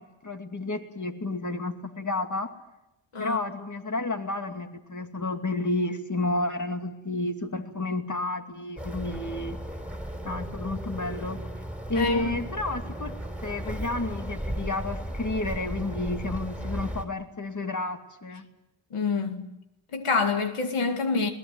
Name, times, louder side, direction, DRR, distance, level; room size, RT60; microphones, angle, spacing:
voice 1, 0.0-2.5 3.2-9.6 10.2-11.5 11.9-13.1 13.4-18.5, left 2 dB, 35° left, 2.5 m, -31 dB
sound 1, 8.8-17.0, right 1 dB, 5° right, 4.0 m, -35 dB
voice 2, 11.9-12.3 18.9-19.5 19.9-21.3, left 4 dB, 85° left, 2.3 m, -27 dB
22.0 x 18.0 x 9.4 m
cardioid pair, 55°, 50 cm